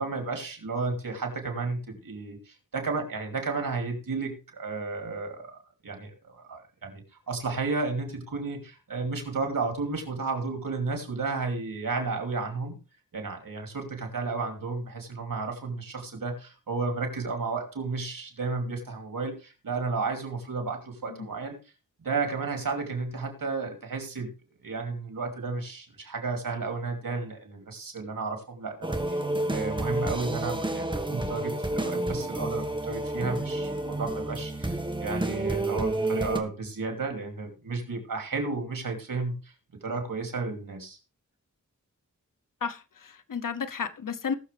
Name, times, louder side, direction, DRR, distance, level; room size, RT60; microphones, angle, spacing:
voice 1, 0.0-12.8 13.1-21.6 22.0-24.3 24.6-29.2 29.5-39.5 39.8-41.0, right 4 dB, 90° right, 2.8 m, -33 dB
sound 1, 28.8-36.4, right 1 dB, 15° right, 1.5 m, -30 dB
voice 2, 42.6-44.3, left 6 dB, 75° left, 0.9 m, -33 dB
19.0 x 6.8 x 3.4 m
wide cardioid pair, 70°, 33 cm